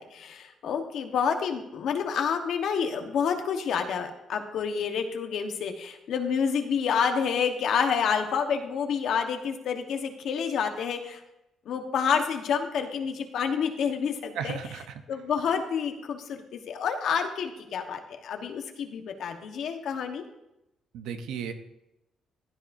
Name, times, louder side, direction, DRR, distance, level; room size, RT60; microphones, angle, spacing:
voice 1, 0.0-11.2 11.7-14.8 15.1-20.2, left 6 dB, 70° left, 5 dB, 1.2 m, -29 dB
voice 2, 14.4-14.8 20.9-21.5, right 7 dB, 90° right, 8 dB, 0.9 m, -34 dB
15.5 x 10.5 x 2.7 m, 0.88 s
cardioid pair, 90°, 0 cm